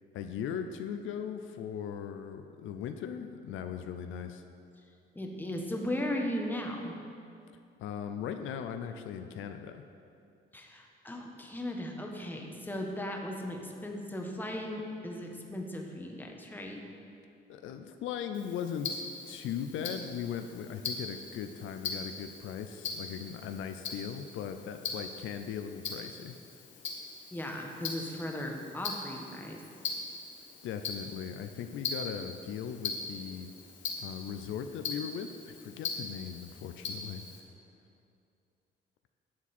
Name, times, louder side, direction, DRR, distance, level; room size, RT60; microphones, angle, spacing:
voice 1, 0.1-4.4 7.8-9.8 17.5-26.4 30.6-33.5 34.0-37.2, left 8 dB, 85° left, 7 dB, 0.6 m, -38 dB
voice 2, 5.1-7.0 10.5-16.8 27.3-29.6, left 1 dB, 10° left, 1 dB, 1.3 m, -37 dB
Tick-tock, 18.3-37.4, left 4 dB, 70° left, 1.5 m, -41 dB
11.0 x 7.2 x 4.3 m, 2.5 s
cardioid pair, 90°, 20 cm